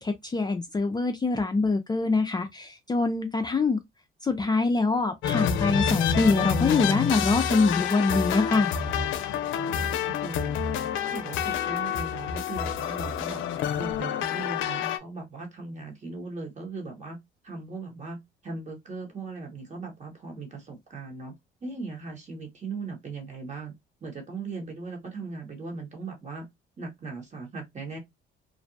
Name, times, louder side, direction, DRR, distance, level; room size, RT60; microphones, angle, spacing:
voice 1, 0.0-3.8 4.2-8.7, left 3 dB, 20° left, 0.4 m, -24 dB
sound 1, 5.2-15.0, left 8 dB, 85° left, 0.4 m, -28 dB
voice 2, 10.0-13.4 13.7-17.2 17.4-18.2 18.4-21.3 21.6-23.7 24.0-26.4 26.8-28.0, right 3 dB, 35° right, 1.2 m, -38 dB
2.5 x 2.1 x 2.6 m
cardioid pair, 90°, 20 cm